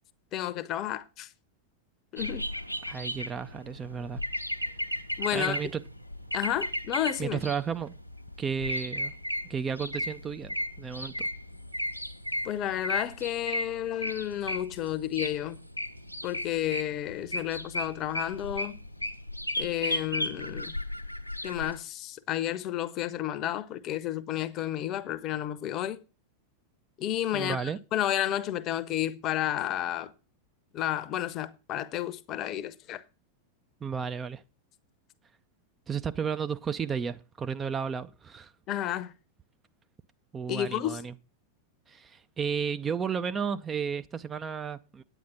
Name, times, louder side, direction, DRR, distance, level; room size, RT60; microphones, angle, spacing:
voice 1, 0.3-1.3 2.1-2.5 5.2-5.6 6.3-7.4 12.4-15.6 16.2-18.8 19.6-20.7 21.4-26.0 27.0-27.6 27.9-30.1 30.7-33.0 38.7-39.1 40.5-41.0, left 12 dB, 35° left, 0.9 m, -31 dB
sound 1, 2.2-21.8, equal, 90° left, 1.0 m, -35 dB
voice 2, 2.9-4.2 5.3-5.8 7.2-7.9 8.4-9.1 9.4-11.3 27.3-27.8 33.8-34.4 35.9-38.5 40.3-41.2 41.9-45.0, right 6 dB, 20° right, 0.6 m, -33 dB
9.4 x 9.2 x 5.6 m
figure-of-eight pair, 90°, 0 cm